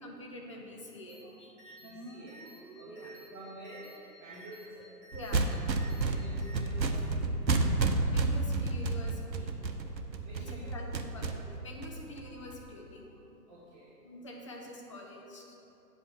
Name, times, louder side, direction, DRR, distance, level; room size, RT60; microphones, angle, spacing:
voice 1, 0.0-1.8 2.9-3.2 5.1-5.7 8.1-9.5 10.4-13.1 14.0-15.6, left 1 dB, 20° left, -1 dB, 0.6 m, -46 dB
sound 1, 1.1-1.2 1.6-1.9 2.3-2.6 3.0-3.3 3.6-4.0 4.3-4.7 5.0-5.3 5.7-6.0 6.4-6.5, equal, 5° right, 1.3 m, -54 dB
voice 2, 1.8-2.4 2.8-4.9 6.0-7.3 8.4-8.5 8.9-9.1 10.2-10.7 13.5-13.9, right 1 dB, 25° right, -12 dB, 1.9 m, -49 dB
sound 2, 1.8-3.8, right 2 dB, 55° right, 1.0 m, -49 dB
sound 3, 5.1-12.5, right 3 dB, 85° right, 0.9 m, -31 dB
8.8 x 5.4 x 6.2 m, 2.8 s
figure-of-eight pair, 140°, 50 cm